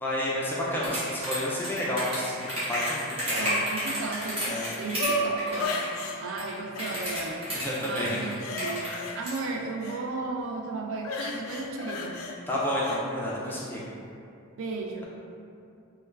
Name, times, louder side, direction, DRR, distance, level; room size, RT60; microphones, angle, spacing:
voice 1, 0.0-2.4 2.7-3.5 4.4-4.7 7.5-8.2 12.5-13.8, left 1 dB, 10° left, -6 dB, 0.3 m, -30 dB
sound 1, 0.8-5.1 5.4-6.0 6.3-9.5, right 1 dB, 25° right, 1.0 m, -31 dB
sound 2, 2.5-3.6 3.9-6.2 6.8-7.6 8.0-10.0 11.0-13.0 13.5-13.6, left 1 dB, 85° left, 0.4 m, -35 dB
voice 2, 3.3-4.4 4.8-5.8 6.2-7.4 7.8-8.9 9.1-12.2 14.6-15.0, right 3 dB, 70° right, 1 dB, 0.4 m, -34 dB
3.3 x 2.2 x 3.2 m, 2.6 s
head